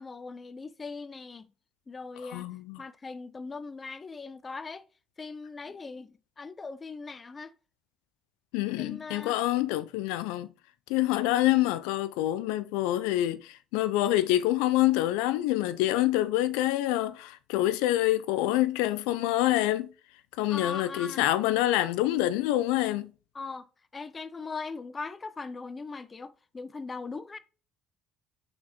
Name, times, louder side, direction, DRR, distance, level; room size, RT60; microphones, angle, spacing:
voice 1, 0.0-1.5 1.9-2.5 2.8-4.8 5.2-7.5 8.8-9.3 20.5-21.3 23.3-23.7 23.9-27.4, left 4 dB, 30° left, 0.5 m, -40 dB
voice 2, 2.3-2.8 8.5-10.5 10.9-19.9 20.4-23.1, left 15 dB, 85° left, 0.3 m, -26 dB
4.2 x 4.2 x 2.9 m
supercardioid pair, 80°, 0 cm